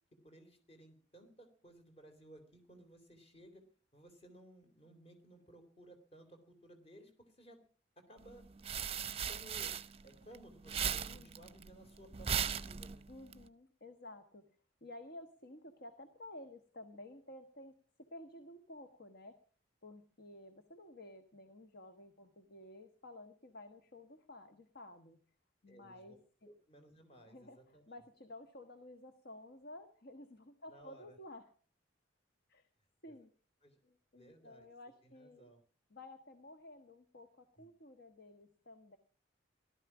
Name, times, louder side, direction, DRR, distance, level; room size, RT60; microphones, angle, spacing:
voice 1, 0.2-3.6 3.9-7.6 8.0-8.5 8.9-9.7 10.0-13.1 25.7-26.2 26.4-27.8 30.7-31.2 33.1-33.2 33.6-33.8 34.1-34.7 35.0-35.6 37.6-37.7, right 1 dB, 35° left, 6 dB, 3.5 m, -58 dB
sound 1, 8.3-10.4 10.6-13.3, right 7 dB, 35° right, 0.7 m, -38 dB
voice 2, 11.1-11.5 13.1-14.4 14.8-19.4 19.8-25.2 25.6-26.2 27.3-31.5 32.5-32.7 33.0-33.3 33.8-35.5 35.9-39.0, left 1 dB, 60° left, 7 dB, 1.4 m, -53 dB
17.5 x 13.0 x 6.1 m, 0.42 s
head